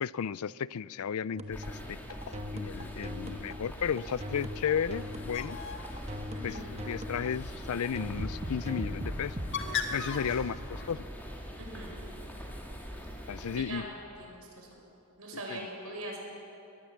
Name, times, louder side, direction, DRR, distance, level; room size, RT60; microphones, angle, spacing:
voice 1, 0.0-2.0 2.3-5.6 6.4-9.4 9.9-11.1 13.3-13.9 15.5-15.6, left 7 dB, 75° left, 20 dB, 0.4 m, -34 dB
sound 1, 1.3-9.5, left 1 dB, 30° right, 1.2 m, -40 dB
sound 2, 1.5-13.6, equal, 10° left, 2.7 m, -43 dB
Bird, 4.8-10.9, left 5 dB, 55° left, 1.8 m, -40 dB
voice 2, 6.3-6.7 10.3-10.4 11.6-12.0 13.2-13.9 14.1-14.7 15.2-16.2, right 1 dB, 75° right, 0 dB, 6.1 m, -42 dB
24.0 x 19.0 x 7.3 m, 2.8 s
head